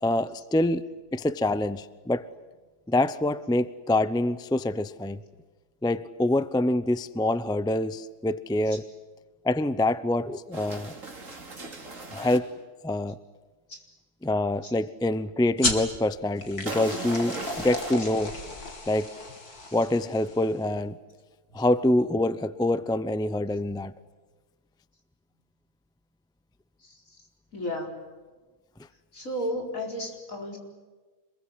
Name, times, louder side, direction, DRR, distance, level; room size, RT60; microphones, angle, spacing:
voice 1, 0.0-0.8 1.1-2.3 2.9-5.2 5.8-8.8 9.4-11.0 12.1-12.5 12.8-13.1 14.2-18.3 18.9-19.1 19.7-21.0 21.5-23.9, left 1 dB, 5° left, 15 dB, 0.4 m, -26 dB
sound 1, 10.5-12.4 16.7-17.9, right 2 dB, 55° right, 3.3 m, -37 dB
sound 2, 15.6-20.7, left 3 dB, 80° left, 3.5 m, -34 dB
voice 2, 26.8-27.3 27.5-28.1 29.1-30.6, equal, 60° left, 2 dB, 5.0 m, -34 dB
26.5 x 22.0 x 9.6 m, 1.3 s
omnidirectional pair, 1.6 m